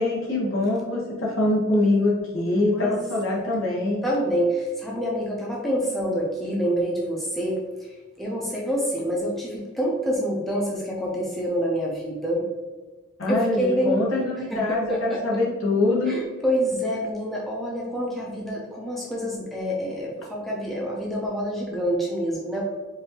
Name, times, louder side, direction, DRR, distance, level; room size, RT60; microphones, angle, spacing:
voice 1, 0.0-4.0 13.2-16.2, left 2 dB, 80° left, -4 dB, 1.2 m, -24 dB
voice 2, 4.0-12.4 13.3-14.0 14.5-15.4 16.1-22.6, equal, ahead, -4 dB, 0.6 m, -27 dB
4.6 x 2.6 x 2.9 m, 1.3 s
head